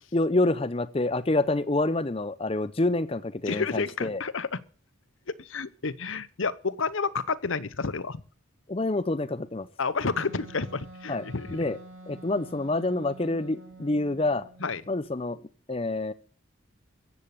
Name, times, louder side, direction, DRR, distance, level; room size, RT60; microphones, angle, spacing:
voice 1, 0.1-4.2 8.7-9.7 11.1-11.2 11.5-11.8 12.1-14.4 14.9-15.4 15.7-16.1, left 2 dB, 30° left, 0.6 m, -27 dB
voice 2, 3.5-4.6 5.4-8.2 9.8-11.6 14.6-14.8, left 4 dB, 70° left, 0.9 m, -30 dB
Wind instrument woodwind instrument, 10.0-14.7, right 2 dB, 85° right, 3.1 m, -47 dB
15.0 x 8.4 x 8.5 m
head